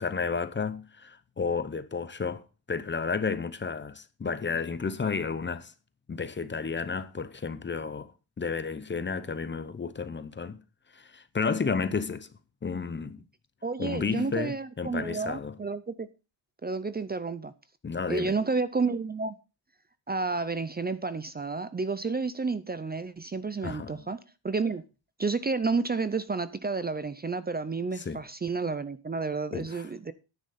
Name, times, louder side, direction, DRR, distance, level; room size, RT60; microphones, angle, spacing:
voice 1, 0.0-5.7 6.1-8.1 8.4-10.6 10.9-12.3 12.6-13.2 13.8-15.6 17.8-18.3 23.6-24.1 28.0-28.2 29.5-29.9, left 5 dB, 25° left, 0.7 m, -32 dB
voice 2, 13.6-16.1 16.6-17.5 18.1-19.4 20.1-24.2 24.4-24.8 25.2-30.1, right 4 dB, 20° right, 0.5 m, -30 dB
10.0 x 9.6 x 4.2 m
wide cardioid pair, 170°, 44 cm